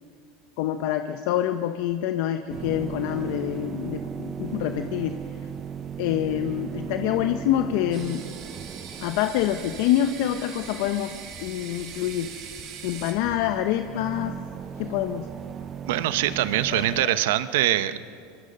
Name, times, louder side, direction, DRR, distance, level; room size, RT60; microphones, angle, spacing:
voice 1, 0.6-5.2 6.0-8.2 9.0-11.1 11.4-12.3 12.8-14.4 14.8-15.2 16.7-17.1, left 12 dB, 70° left, 8 dB, 0.9 m, -26 dB
sound 1, 2.5-17.1, right 7 dB, 35° right, 0.7 m, -37 dB
sound 2, 7.9-13.1, right 7 dB, 55° right, 3.9 m, -42 dB
voice 2, 15.9-18.0, right 14 dB, 75° right, 13 dB, 0.9 m, -23 dB
25.5 x 23.0 x 5.4 m, 2.3 s
supercardioid pair, 110°, 0 cm